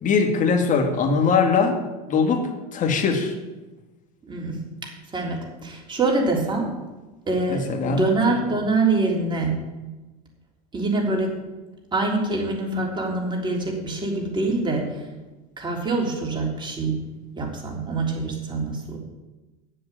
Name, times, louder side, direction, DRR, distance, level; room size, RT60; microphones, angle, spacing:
voice 1, 0.0-1.7 2.1-3.3 7.5-8.0, left 5 dB, 40° left, 4 dB, 2.2 m, -21 dB
voice 2, 4.2-4.6 5.1-6.7 7.3-9.6 10.7-11.3 11.9-15.0 15.6-17.0 17.4-19.0, right 3 dB, 20° right, 0 dB, 3.5 m, -25 dB
9.1 x 7.9 x 8.9 m, 1.1 s
supercardioid pair, 100°, 20 cm